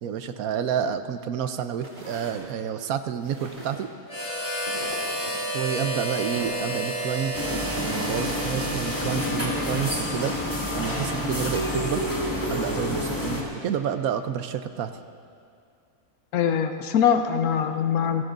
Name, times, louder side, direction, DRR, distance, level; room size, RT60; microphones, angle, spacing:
voice 1, 0.0-3.9 5.5-10.3 10.7-12.0 12.5-14.9, right 8 dB, 80° right, 9 dB, 1.1 m, -29 dB
sound 1, 1.8-2.5 3.2-3.9 4.6-5.4 6.2-6.8 7.6-7.9, equal, 35° right, 3.9 m, -41 dB
Harmonica, 4.1-10.1, right 1 dB, 50° left, 2.7 m, -31 dB
sound 2, 7.3-13.4, left 1 dB, 15° left, 2.1 m, -28 dB
voice 2, 16.3-18.2, left 8 dB, 85° left, 6 dB, 1.2 m, -22 dB
28.0 x 17.0 x 2.6 m, 2.4 s
omnidirectional pair, 1.5 m